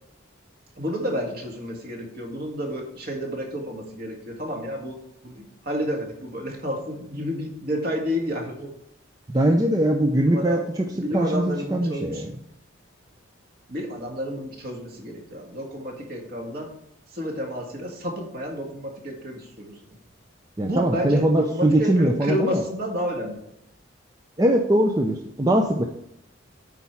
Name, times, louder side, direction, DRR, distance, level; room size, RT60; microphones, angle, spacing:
voice 1, 0.8-5.0 5.2-8.7 10.2-10.6 11.0-12.2 13.7-16.7 17.1-19.7 20.6-23.4, equal, 50° right, 1 dB, 1.9 m, -30 dB
voice 2, 9.3-10.9 11.1-12.3 20.6-22.6 24.4-25.9, right 1 dB, 20° right, 3 dB, 0.5 m, -21 dB
8.4 x 4.7 x 5.7 m, 0.79 s
head